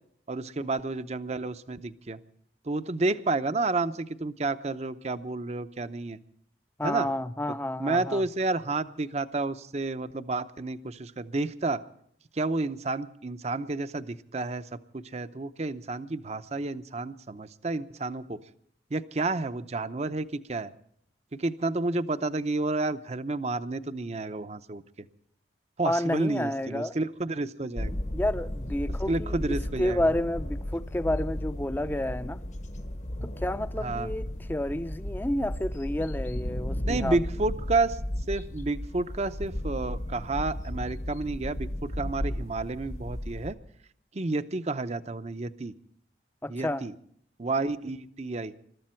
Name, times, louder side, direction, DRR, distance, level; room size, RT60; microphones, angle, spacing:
voice 1, 0.3-2.2 2.7-6.2 6.8-7.1 7.8-11.8 12.3-14.6 14.9-18.4 18.9-20.7 21.3-24.8 25.8-28.0 29.1-30.0 33.8-34.1 36.8-38.0 38.3-43.6 44.1-45.7 46.5-46.9 47.4-48.5, right 2 dB, 40° right, 0.6 m, -30 dB
voice 2, 6.8-8.3 25.8-27.0 28.1-32.4 33.2-37.2 46.4-46.9, left 1 dB, 10° left, 0.5 m, -30 dB
sound 1, 27.8-43.5, left 1 dB, 40° left, 1.0 m, -34 dB
22.0 x 13.5 x 4.4 m
head